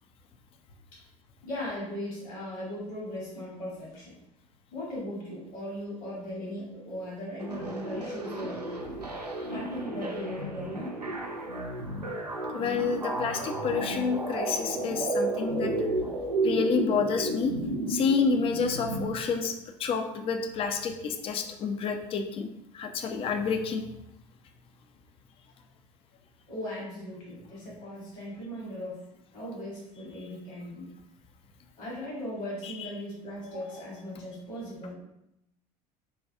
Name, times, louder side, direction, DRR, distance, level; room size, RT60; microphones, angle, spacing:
voice 1, 1.4-4.1 4.7-8.7 9.5-11.0 26.5-29.0 29.3-30.9 31.8-34.9, left 1 dB, 65° left, -6 dB, 1.4 m, -38 dB
sound 1, 7.4-19.0, right 2 dB, 90° right, 0.4 m, -32 dB
voice 2, 12.5-15.9 16.4-17.5 17.9-22.5 22.7-23.9 32.6-32.9, left 5 dB, 30° left, 5 dB, 0.4 m, -29 dB
4.3 x 2.2 x 2.7 m, 0.85 s
figure-of-eight pair, 65°, 20 cm